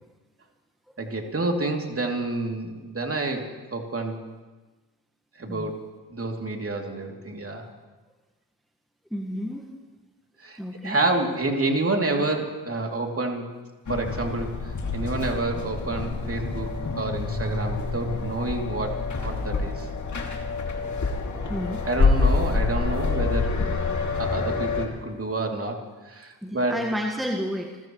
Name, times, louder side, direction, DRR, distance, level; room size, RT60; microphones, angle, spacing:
voice 1, 1.0-4.2 5.4-5.8 6.1-7.7 10.4-13.5 13.9-19.9 21.8-23.5 24.1-26.8, right 2 dB, 30° right, 2 dB, 2.9 m, -29 dB
voice 2, 9.1-9.6 10.6-11.0 21.5-21.8 26.4-27.8, equal, ahead, 1 dB, 1.5 m, -31 dB
sound 1, 13.9-24.9, left 4 dB, 35° left, 2.6 m, -27 dB
28.5 x 15.5 x 3.2 m, 1.2 s
hypercardioid pair, 50°, 48 cm